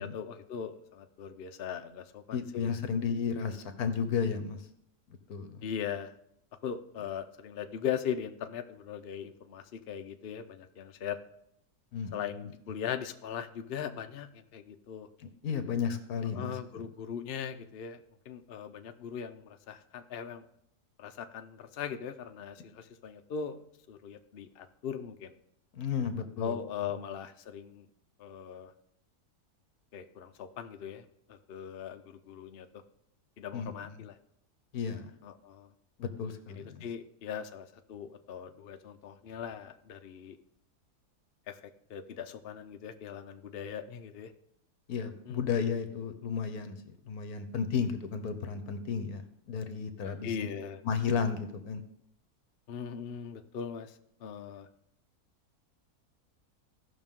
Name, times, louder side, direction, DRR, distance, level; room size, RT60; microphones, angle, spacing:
voice 1, 0.0-2.7 5.6-6.2 6.6-11.2 12.1-15.1 16.3-20.4 21.0-23.6 23.9-25.3 26.4-27.9 28.2-28.7 29.9-32.8 33.4-34.1 35.2-35.7 36.5-40.4 41.5-41.6 41.9-44.3 45.3-45.5 50.2-50.8 52.7-54.7, left 8 dB, 55° left, 7 dB, 0.7 m, -40 dB
voice 2, 2.3-4.6 5.3-5.6 11.9-12.3 15.2-16.8 25.7-26.6 33.5-34.0 34.7-35.1 36.0-36.9 44.9-50.3 50.8-51.8, left 6 dB, 75° left, 8 dB, 1.4 m, -33 dB
16.0 x 5.9 x 3.7 m, 0.74 s
omnidirectional pair, 1.7 m